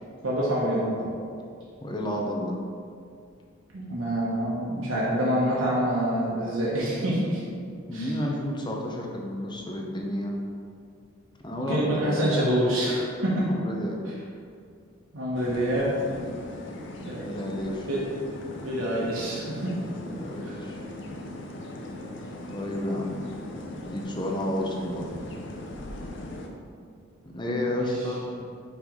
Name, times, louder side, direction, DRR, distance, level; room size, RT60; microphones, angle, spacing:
voice 1, 0.2-1.1 3.7-7.4 7.9-8.1 11.7-13.5 15.1-15.9 17.0-17.4 17.9-18.0 18.6-19.7 27.7-27.9, right 1 dB, 80° right, -6 dB, 1.2 m, -26 dB
voice 2, 1.8-2.6 7.9-10.4 11.4-12.3 13.5-14.0 17.2-17.9 19.9-20.8 22.5-23.2 23.7-25.1 27.2-28.4, left 1 dB, 25° left, -1 dB, 0.7 m, -31 dB
sound 1, 15.3-26.5, left 1 dB, 65° left, 0.7 m, -39 dB
5.8 x 3.3 x 5.1 m, 2.3 s
head